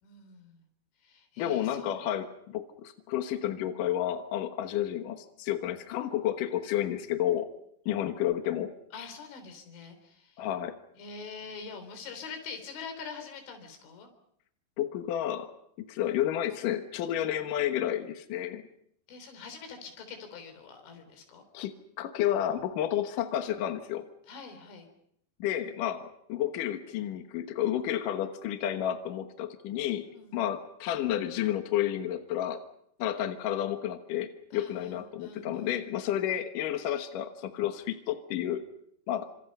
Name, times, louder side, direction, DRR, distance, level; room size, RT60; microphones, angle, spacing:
voice 1, 0.0-0.7 1.0-2.0 8.9-10.4 11.0-14.1 19.1-21.4 24.3-24.9 30.1-30.4 34.5-35.7, left 5 dB, 90° left, 7 dB, 6.4 m, -45 dB
voice 2, 1.4-7.5 7.9-9.1 10.4-10.7 14.8-15.5 15.9-18.6 21.5-24.1 25.4-32.6 33.0-38.6 39.1-39.3, left 11 dB, 70° left, 7 dB, 2.1 m, -31 dB
29.0 x 26.5 x 5.5 m, 0.72 s
omnidirectional pair, 5.4 m